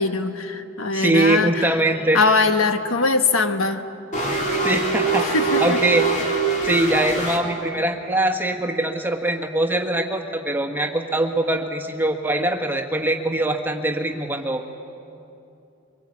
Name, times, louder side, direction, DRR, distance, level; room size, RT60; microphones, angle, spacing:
voice 1, 0.0-1.7 2.1-3.8 5.2-5.8, left 3 dB, 80° left, 7 dB, 1.3 m, -21 dB
voice 2, 0.9-2.2 4.6-6.0 6.6-14.6, right 2 dB, 10° right, 3 dB, 1.6 m, -22 dB
sound 1, 4.1-7.4, right 3 dB, 35° left, 3.7 m, -23 dB
24.0 x 22.5 x 8.7 m, 2.6 s
head